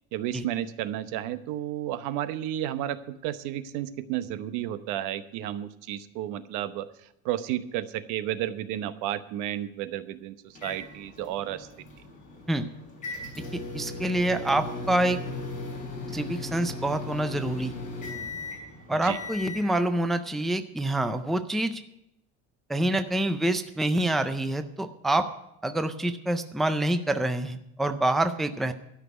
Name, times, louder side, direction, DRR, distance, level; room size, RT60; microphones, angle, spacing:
voice 1, 0.1-6.9 7.2-11.7 18.9-19.2, right 12 dB, 85° right, 13 dB, 0.9 m, -32 dB
sound 1, 10.5-19.7, left 3 dB, 25° left, 3.6 m, -37 dB
voice 2, 13.5-15.2 16.1-17.7 18.9-21.8 22.7-25.3 25.6-28.7, right 1 dB, ahead, 9 dB, 0.3 m, -26 dB
12.5 x 6.0 x 9.2 m, 0.82 s
cardioid pair, 170°, 31 cm